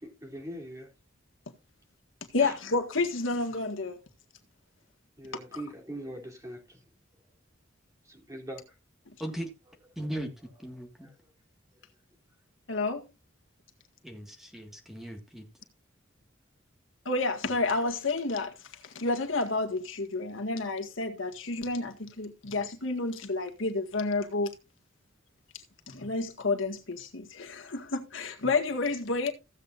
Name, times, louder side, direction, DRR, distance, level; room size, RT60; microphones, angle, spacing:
voice 1, 0.0-0.9 2.4-2.5 5.2-6.8 8.1-8.6, right 1 dB, 15° right, 3.2 m, -41 dB
voice 2, 2.3-4.0 5.5-5.6 12.7-13.0 17.1-24.5 25.9-29.3, left 3 dB, 85° left, 1.8 m, -30 dB
voice 3, 9.2-9.5 9.9-11.1 14.0-15.5, right 1 dB, ahead, 1.7 m, -38 dB
15.5 x 8.2 x 2.5 m
head